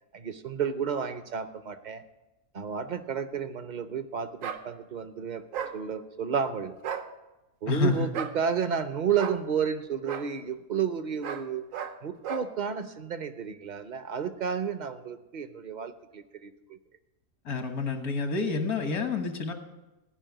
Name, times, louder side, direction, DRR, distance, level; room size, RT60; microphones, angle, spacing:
voice 1, 0.1-2.0 2.5-5.4 5.7-6.8 7.6-11.6 12.0-16.8, right 7 dB, 45° right, 11 dB, 0.6 m, -31 dB
sound 1, 4.4-4.6 5.5-5.8 6.8-7.1 8.1-8.4 9.2-9.4 10.1-10.3 11.2-11.5 11.7-12.0 12.2-12.5, right 8 dB, 70° right, 1.2 m, -34 dB
voice 2, 7.7-8.1 17.5-19.5, left 4 dB, 90° left, 6 dB, 1.8 m, -28 dB
16.0 x 5.4 x 9.1 m, 1.0 s
omnidirectional pair, 1.5 m